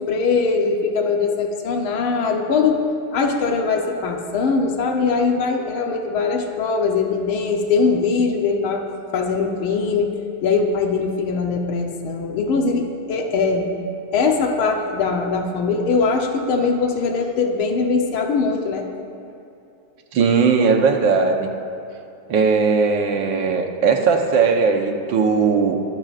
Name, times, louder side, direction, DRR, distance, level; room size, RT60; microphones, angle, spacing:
voice 1, 0.0-2.8 3.1-8.9 9.1-10.1 10.4-13.7 14.1-18.9, left 4 dB, 85° left, 2 dB, 1.8 m, -21 dB
voice 2, 20.1-21.5 22.3-25.8, right 5 dB, 65° right, 4 dB, 1.7 m, -18 dB
22.5 x 14.0 x 2.5 m, 2.7 s
omnidirectional pair, 2.3 m